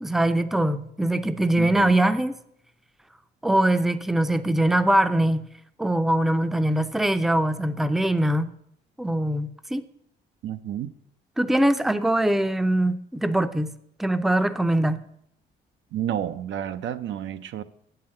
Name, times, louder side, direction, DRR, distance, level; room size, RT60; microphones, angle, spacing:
voice 1, 0.0-2.3 3.4-5.5 5.8-8.5 9.0-9.8 11.4-13.7 14.0-15.0, right 1 dB, ahead, 0.5 m, -22 dB
voice 2, 1.5-2.0 10.4-10.9 15.9-17.6, right 10 dB, 70° right, 0.6 m, -30 dB
7.8 x 5.8 x 7.6 m
cardioid pair, 90°, 20 cm